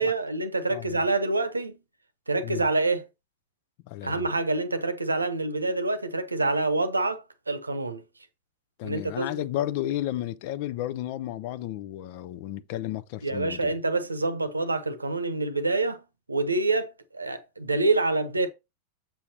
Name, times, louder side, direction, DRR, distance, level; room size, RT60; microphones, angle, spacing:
voice 1, 0.0-1.8 2.3-3.1 4.0-8.0 8.8-9.3 13.2-16.0 16.3-18.5, right 3 dB, 80° right, 0.9 m, -26 dB
voice 2, 3.9-4.3 8.8-13.7, left 13 dB, 45° left, 0.6 m, -33 dB
7.1 x 7.1 x 2.8 m
figure-of-eight pair, 90°, 0 cm